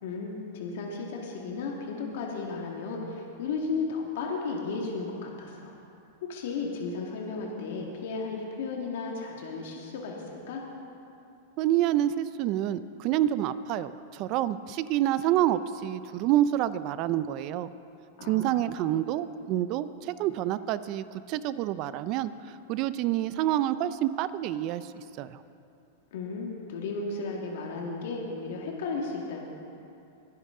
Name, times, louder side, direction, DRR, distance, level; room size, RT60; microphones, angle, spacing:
voice 1, 0.0-5.7 6.3-10.6 18.2-18.7 26.1-29.5, left 4 dB, 70° left, -1 dB, 1.9 m, -34 dB
voice 2, 11.6-17.7 18.3-25.4, right 12 dB, 40° right, 14 dB, 0.5 m, -28 dB
22.0 x 10.5 x 3.8 m, 2.6 s
supercardioid pair, 140°, 0 cm